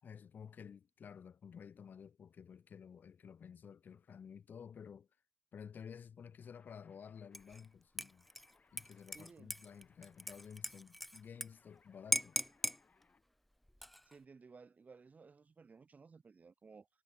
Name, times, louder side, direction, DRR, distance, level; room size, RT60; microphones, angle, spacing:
voice 1, 0.0-5.1 5.5-8.3 8.7-12.4, left 7 dB, 85° left, 3.5 m, -53 dB
sound 1, 6.4-13.3, left 4 dB, 55° left, 7.1 m, -73 dB
Dishes pots and pans / Liquid, 7.3-7.7 8.0-11.5 11.7-11.8 12.1-12.8 13.7-14.2, equal, 5° left, 0.3 m, -39 dB
voice 2, 9.1-9.5 14.1-16.9, right 4 dB, 60° right, 2.2 m, -58 dB
cardioid pair, 65°, 3 cm